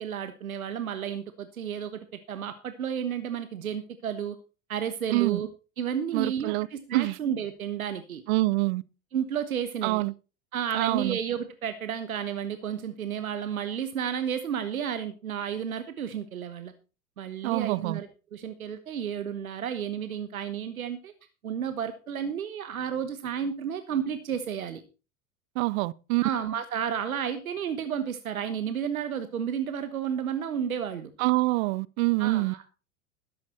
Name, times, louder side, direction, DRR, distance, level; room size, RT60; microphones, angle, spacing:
voice 1, 0.0-2.0 2.3-4.3 4.7-5.5 5.8-8.2 9.1-10.0 10.5-16.7 17.2-21.1 21.4-24.8 26.2-31.1 32.2-32.7, right 8 dB, 85° right, 1.2 m, -32 dB
voice 2, 5.1-5.4 6.1-6.7 6.9-7.2 8.3-8.8 9.8-10.1 10.7-11.2 17.4-18.0 25.6-26.2 31.2-32.5, right 21 dB, 55° right, 0.7 m, -26 dB
13.5 x 10.5 x 4.3 m
hypercardioid pair, 90°, 41 cm